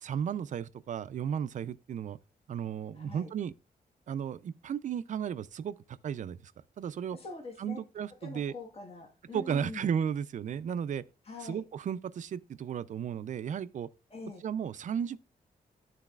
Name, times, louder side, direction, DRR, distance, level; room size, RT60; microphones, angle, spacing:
voice 1, 0.0-2.2 2.5-3.5 4.1-6.5 6.8-7.2 7.6-8.5 9.3-11.0 11.4-13.9 14.4-15.2, right 8 dB, 55° right, 0.4 m, -34 dB
voice 2, 2.9-3.3 7.1-7.8 8.2-9.9 11.2-11.6 14.1-14.4, left 3 dB, 40° left, 1.3 m, -44 dB
12.0 x 4.0 x 2.3 m
wide cardioid pair, 150°, 16 cm